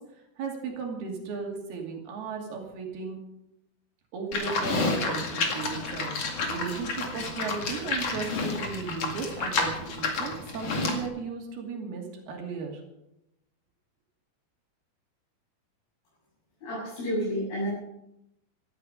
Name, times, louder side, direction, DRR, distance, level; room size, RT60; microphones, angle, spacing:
voice 1, 0.4-3.2 4.1-12.8, right 5 dB, 90° right, 1 dB, 4.5 m, -36 dB
Livestock farm animals working animals, 4.3-11.1, left 3 dB, 45° left, 2.9 m, -30 dB
voice 2, 16.6-17.7, equal, 80° left, -8 dB, 9.5 m, -30 dB
17.5 x 13.0 x 5.3 m, 0.85 s
omnidirectional pair, 4.3 m